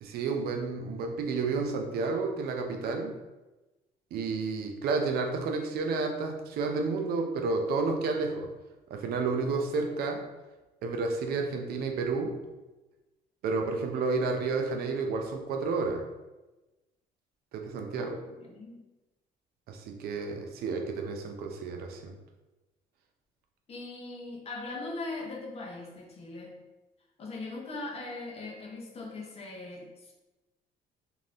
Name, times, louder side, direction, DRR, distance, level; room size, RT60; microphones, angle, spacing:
voice 1, 0.0-3.1 4.1-8.5 8.9-10.2 10.8-12.4 13.4-16.0 17.5-18.2 19.7-22.1, right 4 dB, 65° right, 4 dB, 0.5 m, -31 dB
voice 2, 18.4-18.8 23.7-26.6 27.2-30.1, left 2 dB, 35° left, 0 dB, 0.7 m, -40 dB
2.6 x 2.5 x 3.3 m, 1.1 s
cardioid pair, 110°, 17 cm